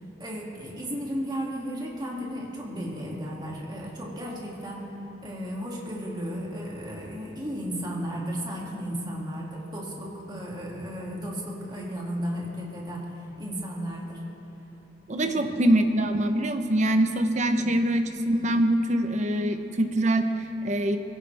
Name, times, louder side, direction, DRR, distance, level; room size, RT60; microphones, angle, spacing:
voice 1, 0.2-4.9 5.2-14.2 15.2-15.6 17.4-17.7, equal, 25° right, -3 dB, 2.5 m, -34 dB
voice 2, 15.1-21.0, right 1 dB, 40° right, 7 dB, 0.9 m, -24 dB
22.5 x 16.5 x 3.5 m, 2.9 s
head